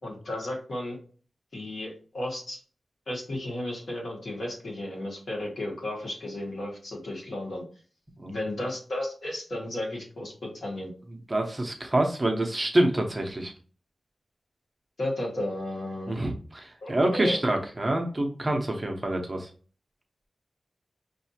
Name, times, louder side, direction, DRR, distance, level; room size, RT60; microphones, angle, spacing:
voice 1, 0.0-1.0 1.5-2.6 3.1-7.6 8.3-10.9 15.0-16.1 16.8-17.4, left 1 dB, 75° left, -3 dB, 1.7 m, -34 dB
voice 2, 11.3-13.5 16.1-19.5, right 1 dB, 25° right, 2 dB, 0.8 m, -26 dB
5.6 x 2.7 x 2.8 m, 0.39 s
wide cardioid pair, 120°, 0 cm